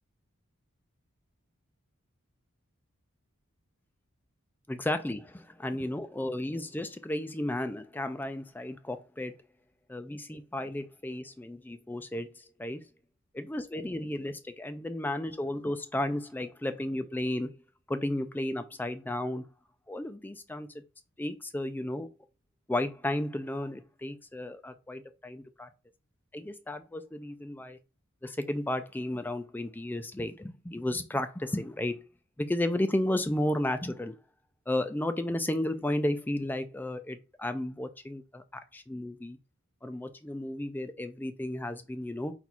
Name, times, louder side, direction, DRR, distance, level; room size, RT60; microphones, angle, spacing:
voice 1, 4.7-9.3 9.9-12.8 13.3-17.5 17.9-19.4 19.9-20.7 21.2-22.1 22.7-25.7 26.3-27.8 28.2-32.0 32.4-34.1 34.7-38.4 38.7-39.4 39.8-42.3, left 1 dB, 10° left, 0.3 m, -33 dB
4.3 x 2.3 x 4.0 m
head